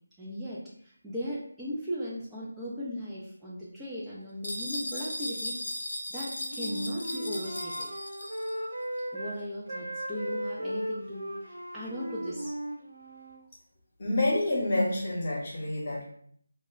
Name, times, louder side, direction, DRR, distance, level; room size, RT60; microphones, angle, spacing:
voice 1, 0.2-5.5 6.1-7.9 9.1-12.5, equal, 5° right, -9 dB, 0.3 m, -37 dB
sound 1, 4.4-8.6, left 1 dB, 70° left, 0.6 m, -37 dB
Wind instrument woodwind instrument, 6.3-9.4 9.7-13.4, right 1 dB, 70° right, 0.6 m, -37 dB
voice 2, 14.0-16.1, left 1 dB, 40° left, -3 dB, 0.8 m, -28 dB
2.1 x 2.0 x 3.5 m, 0.62 s
figure-of-eight pair, 160°, 0 cm